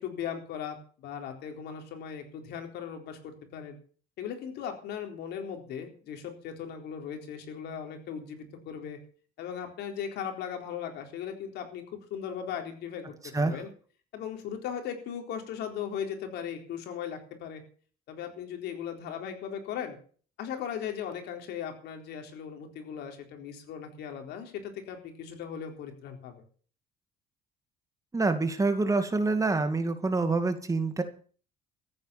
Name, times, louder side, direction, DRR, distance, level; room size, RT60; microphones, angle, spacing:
voice 1, 0.0-3.8 4.2-9.0 9.4-13.7 14.1-17.6 18.1-20.0 20.4-26.4, left 8 dB, 80° left, 4 dB, 4.0 m, -38 dB
voice 2, 28.1-31.0, right 3 dB, 20° right, 8 dB, 2.3 m, -26 dB
14.5 x 9.7 x 7.1 m, 0.44 s
cardioid pair, 110°, 17 cm